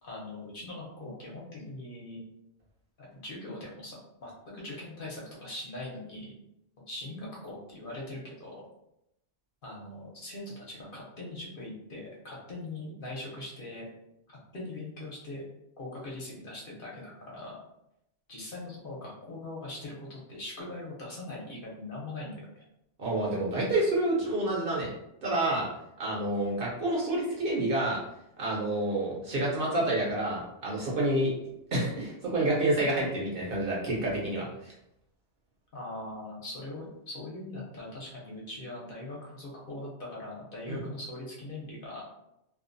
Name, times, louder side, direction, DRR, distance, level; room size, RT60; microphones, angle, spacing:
voice 1, 0.0-2.2 3.0-6.3 6.9-8.6 9.6-13.9 14.3-15.4 15.8-17.6 18.3-22.3 35.7-42.0, left 2 dB, 55° left, -4 dB, 0.8 m, -41 dB
voice 2, 23.0-24.9 25.2-25.7 26.0-28.0 28.4-31.3 31.7-34.7 40.7-40.8, right 1 dB, 55° right, -4 dB, 0.8 m, -28 dB
2.5 x 2.1 x 2.5 m, 0.81 s
omnidirectional pair, 1.2 m